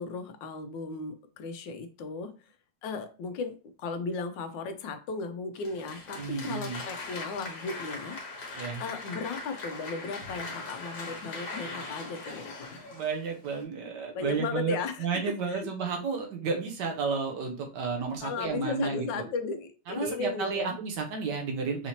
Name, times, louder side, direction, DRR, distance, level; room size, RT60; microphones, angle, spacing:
voice 1, 0.0-2.5 2.8-8.2 8.8-12.8 14.1-14.9 15.5-15.7 18.2-20.8, left 4 dB, 85° left, 9 dB, 1.3 m, -36 dB
Applause, 5.5-13.6, left 3 dB, 65° left, 1.7 m, -41 dB
voice 2, 6.2-6.8 8.6-8.8 12.9-19.2 19.9-21.9, right 5 dB, 70° right, 3 dB, 1.3 m, -32 dB
4.7 x 2.8 x 2.8 m, 0.35 s
omnidirectional pair, 2.0 m